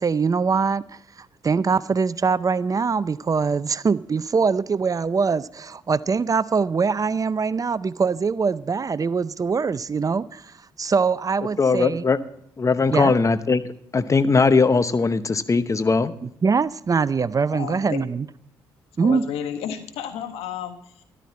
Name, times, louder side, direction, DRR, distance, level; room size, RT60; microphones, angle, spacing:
voice 1, 0.0-12.1 12.9-13.1 16.2-18.3 19.0-19.2, right 5 dB, 35° right, 17 dB, 0.6 m, -23 dB
voice 2, 11.6-12.2 12.6-13.6 13.9-16.1, left 4 dB, 30° left, 13 dB, 0.9 m, -19 dB
voice 3, 17.5-18.0 19.0-21.0, left 9 dB, 80° left, 7 dB, 1.4 m, -32 dB
13.0 x 12.5 x 4.2 m, 0.69 s
hypercardioid pair, 50°, 10 cm